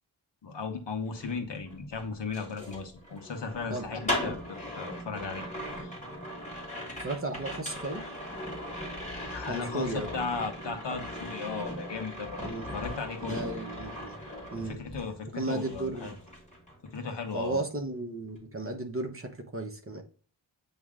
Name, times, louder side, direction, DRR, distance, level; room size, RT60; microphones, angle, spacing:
voice 1, 0.4-5.5 5.8-6.0 9.3-12.4 12.7-13.4 14.6-16.1 16.8-17.6, left 4 dB, 65° left, 4 dB, 1.4 m, -36 dB
sound 1, 1.0-15.2 15.5-17.0 17.2-17.6, left 1 dB, 15° left, 2.4 m, -39 dB
voice 2, 3.7-4.0 7.0-8.0 9.5-10.1 12.4-12.7 13.2-14.2 14.5-14.8 15.4-16.1 17.3-20.0, right 2 dB, 30° right, 4 dB, 1.1 m, -34 dB
8.5 x 3.2 x 3.6 m, 0.41 s
wide cardioid pair, 125°, 46 cm